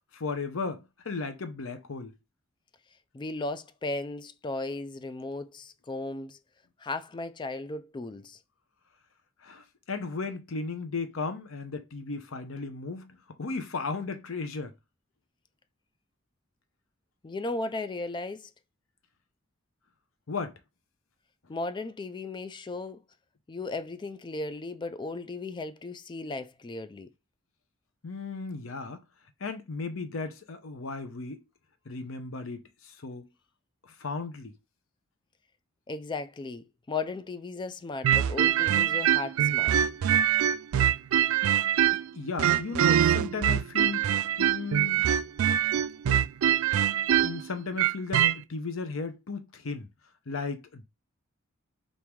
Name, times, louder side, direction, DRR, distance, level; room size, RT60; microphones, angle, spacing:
voice 1, 0.1-2.1 9.4-14.7 20.3-20.6 28.0-29.0 29.4-31.4 31.9-33.3 33.8-34.5 41.9-44.1 44.4-45.0 46.1-46.2 47.2-49.9 50.3-50.9, left 4 dB, 75° left, 0.7 m, -35 dB
voice 2, 3.1-6.4 6.8-8.4 17.2-18.5 21.5-23.0 23.5-27.1 35.9-39.8, left 3 dB, 20° left, 0.3 m, -36 dB
sound 1, 38.0-42.1 42.4-48.4, right 9 dB, 85° right, 0.3 m, -24 dB
3.6 x 2.6 x 4.5 m
head